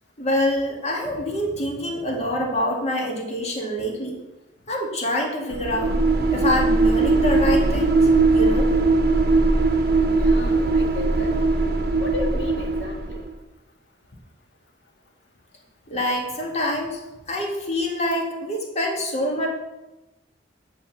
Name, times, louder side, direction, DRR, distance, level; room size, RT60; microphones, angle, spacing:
voice 1, 0.2-4.2 4.7-5.9 6.3-8.7 15.9-17.0 17.3-19.5, left 1 dB, 40° left, 0 dB, 2.0 m, -26 dB
sound 1, 5.5-13.3, right 3 dB, 60° right, 0.9 m, -20 dB
voice 2, 10.1-11.3 12.0-13.3, left 1 dB, 80° left, 1 dB, 1.8 m, -33 dB
9.2 x 4.3 x 7.2 m, 1.0 s
head